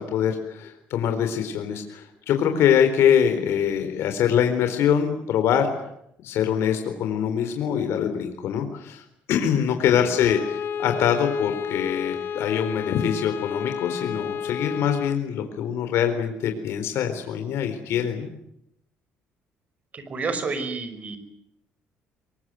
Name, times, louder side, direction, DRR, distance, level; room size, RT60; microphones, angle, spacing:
voice 1, 0.0-5.7 6.2-9.0 9.3-18.3, left 8 dB, 70° left, 6 dB, 4.1 m, -24 dB
Bowed string instrument, 10.1-15.3, left 7 dB, 55° left, 1.7 m, -31 dB
voice 2, 19.9-21.2, right 4 dB, 35° right, 10 dB, 5.3 m, -30 dB
24.0 x 22.5 x 9.4 m, 0.77 s
cardioid pair, 150°, 5 cm